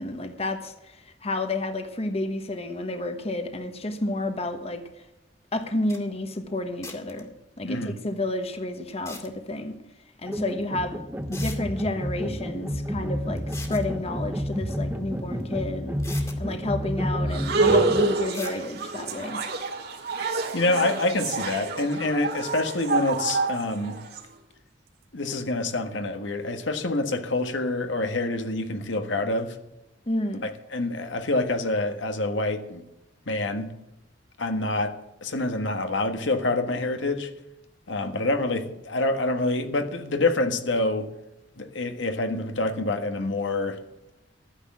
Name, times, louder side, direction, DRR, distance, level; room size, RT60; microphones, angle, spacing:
voice 1, 0.0-4.8 5.5-7.3 7.6-9.8 10.2-11.0 11.3-19.4 30.1-30.5, left 2 dB, 35° left, 1.2 m, -30 dB
sound 1, 5.6-5.7 5.9-6.0 6.8-7.2 8.9-9.3 10.6-10.7 11.3-11.6 13.4-13.9 15.4-15.5 16.0-16.4 18.3-18.6, left 3 dB, 15° left, 2.1 m, -40 dB
voice 2, 7.6-7.9 20.5-24.0 25.1-29.6 30.4-32.8 33.3-33.7 34.4-37.3 37.9-41.1 41.6-43.8, left 2 dB, 80° left, 1.5 m, -26 dB
sound 2, 10.3-18.1, equal, 10° right, 0.8 m, -30 dB
sound 3, 17.3-24.2, right 3 dB, 60° right, 2.3 m, -27 dB
13.0 x 9.8 x 7.4 m
head